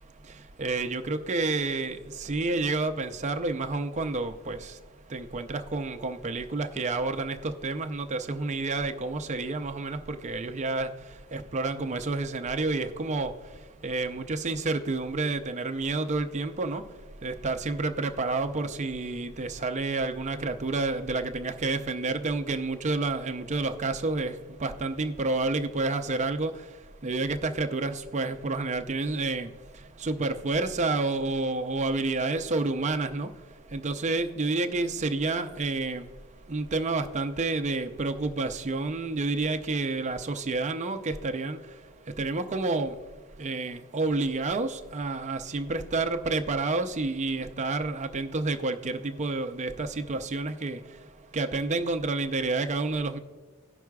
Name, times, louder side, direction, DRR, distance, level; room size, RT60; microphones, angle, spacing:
voice 1, 0.6-4.6 5.1-10.9 11.3-13.3 13.8-16.8 17.2-24.3 24.6-26.5 27.0-29.5 30.0-33.3 33.7-36.0 36.5-41.6 42.2-42.9 43.4-50.8 51.3-53.2, right 3 dB, 35° right, 6 dB, 0.5 m, -29 dB
18.0 x 6.0 x 2.3 m, 1.3 s
head